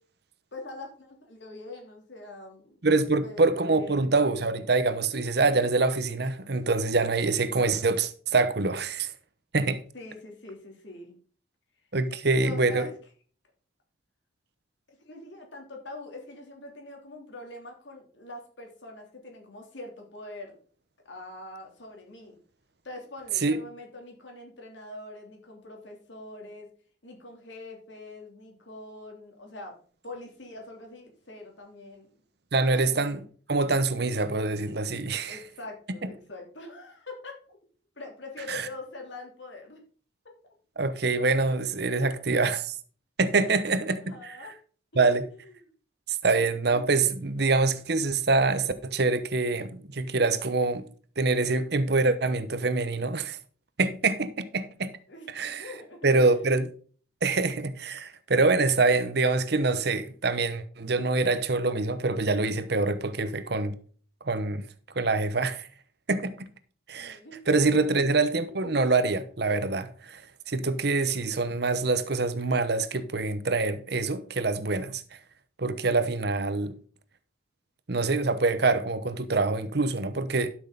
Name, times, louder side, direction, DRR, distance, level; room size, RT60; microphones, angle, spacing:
voice 1, 0.5-4.1 9.9-11.2 12.4-12.9 14.9-20.6 21.0-22.4 22.8-26.7 27.0-29.7 30.0-32.1 32.7-33.3 35.2-37.6 38.0-39.8 44.0-44.5 45.1-45.7 55.1-56.0 56.3-56.4 67.0-67.4 67.9-68.0 68.5-68.6, left 2 dB, 70° left, 3.1 m, -44 dB
voice 2, 2.8-9.1 9.5-9.8 11.9-12.9 23.4-23.6 32.5-33.2 33.5-35.4 38.5-38.7 40.8-42.7 43.2-44.4 44.9-45.3 46.2-50.8 51.2-53.4 53.8-54.9 55.3-55.7 56.0-56.7 57.2-63.7 64.3-64.6 64.9-65.7 66.1-66.3 66.9-67.2 67.5-70.2 70.5-75.0 75.6-76.7 77.9-80.5, right 3 dB, 55° right, 0.9 m, -25 dB
12.0 x 6.4 x 3.9 m
head